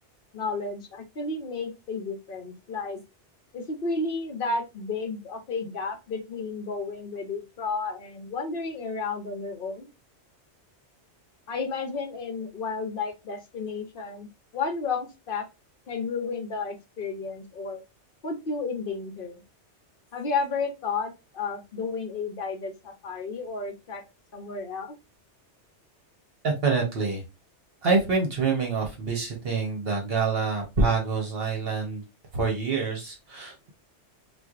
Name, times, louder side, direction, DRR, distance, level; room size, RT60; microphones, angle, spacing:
voice 1, 0.3-3.0 3.5-9.9 11.5-15.5 15.9-17.8 18.2-19.4 20.1-24.0 24.3-25.0, left 4 dB, 55° left, 4 dB, 0.8 m, -32 dB
voice 2, 26.4-27.2 27.8-32.0 32.3-33.7, right 4 dB, 60° right, 1 dB, 1.0 m, -26 dB
4.3 x 2.4 x 2.3 m, 0.25 s
omnidirectional pair, 1.2 m